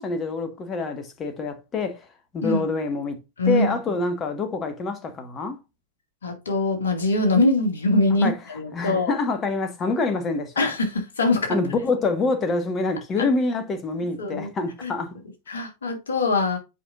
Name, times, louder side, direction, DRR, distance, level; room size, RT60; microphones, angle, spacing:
voice 1, 0.0-2.1 2.3-3.2 3.4-5.6 8.2-8.3 8.7-10.7 11.5-15.1, left 3 dB, 25° left, 1.5 m, -26 dB
voice 2, 3.4-3.8 6.2-9.1 10.6-11.6 13.2-13.3 14.2-14.5 14.8-14.9 15.5-16.6, left 2 dB, 70° left, 2.1 m, -23 dB
8.3 x 5.0 x 2.5 m
figure-of-eight pair, 90°, 0 cm